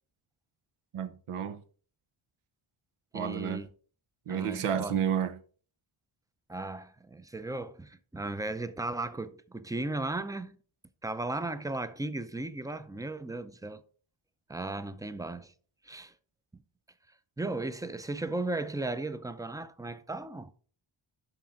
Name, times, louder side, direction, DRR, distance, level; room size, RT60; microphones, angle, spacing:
voice 1, 0.9-1.6 3.1-3.6 4.3-5.4, right 8 dB, 85° right, 1.0 m, -31 dB
voice 2, 3.1-3.7 4.3-5.0 6.5-10.6 11.0-13.8 14.5-15.5 15.8-16.1 16.5-16.6 17.4-20.5, right 2 dB, 5° right, 0.5 m, -36 dB
12.0 x 4.3 x 3.7 m
wide cardioid pair, 115°, 49 cm